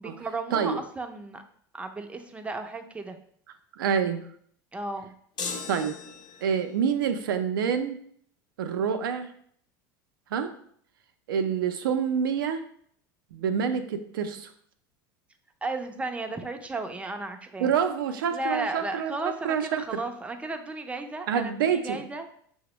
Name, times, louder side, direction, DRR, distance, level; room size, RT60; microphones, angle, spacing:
voice 1, 0.0-1.4 1.7-3.2 4.7-5.1 15.6-17.7 18.3-22.2, right 2 dB, 10° right, 6 dB, 0.4 m, -34 dB
voice 2, 3.8-4.3 5.7-6.0 6.4-8.0 8.6-9.3 10.3-10.5 11.3-12.6 13.3-14.5 17.6-19.8 21.3-22.1, right 7 dB, 85° right, 8 dB, 0.4 m, -27 dB
sound 1, 5.4-6.7, left 5 dB, 40° left, 0.7 m, -36 dB
5.8 x 2.1 x 2.9 m, 0.63 s
hypercardioid pair, 100°, 11 cm